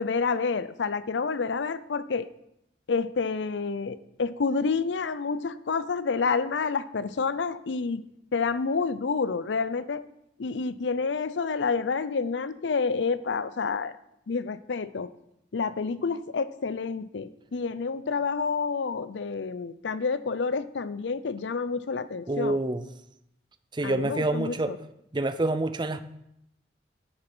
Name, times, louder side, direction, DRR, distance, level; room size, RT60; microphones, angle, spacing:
voice 1, 0.0-2.3 2.9-8.0 8.3-10.0 10.4-13.9 14.3-15.1 15.5-22.6 23.8-24.8, left 5 dB, 80° left, 15 dB, 0.5 m, -29 dB
voice 2, 22.3-22.8 23.7-24.7 25.1-26.0, right 2 dB, 25° right, 11 dB, 0.5 m, -27 dB
9.9 x 6.5 x 6.1 m, 0.80 s
head